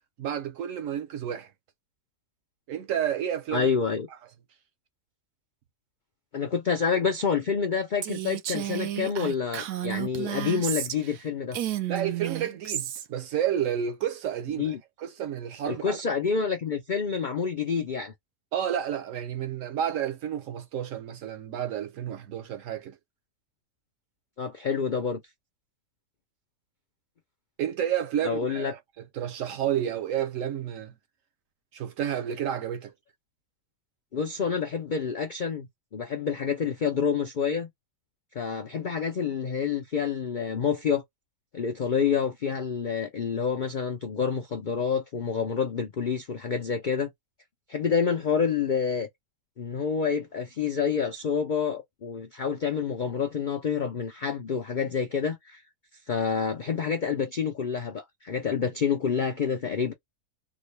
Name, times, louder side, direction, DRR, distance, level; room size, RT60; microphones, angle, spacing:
voice 1, 0.2-1.5 2.7-3.7 11.9-16.0 18.5-23.0 27.6-28.8 29.1-30.9 31.7-32.9, right 9 dB, 65° right, 0.9 m, -30 dB
voice 2, 3.5-4.1 6.3-11.6 14.6-14.8 15.7-18.1 24.4-25.2 28.2-28.7 34.1-37.7 38.3-41.0 41.5-47.1 47.7-49.1 49.6-55.6 56.1-59.9, left 6 dB, 85° left, 0.4 m, -28 dB
Female speech woman speaking, 8.0-11.2 11.5-13.1, right 12 dB, 85° right, 1.2 m, -32 dB
3.6 x 2.2 x 3.2 m
omnidirectional pair, 1.7 m